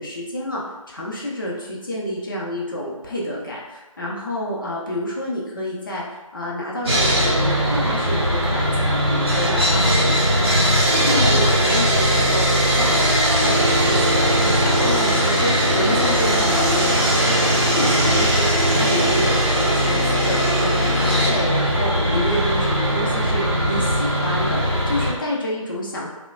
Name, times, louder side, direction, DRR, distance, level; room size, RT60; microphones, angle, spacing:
voice 1, 0.0-10.6 10.8-26.1, equal, 40° left, -4 dB, 0.5 m, -29 dB
Sawing, 6.8-25.1, equal, 45° right, 0.7 m, -19 dB
2.8 x 2.0 x 2.3 m, 1.1 s
figure-of-eight pair, 155°, 18 cm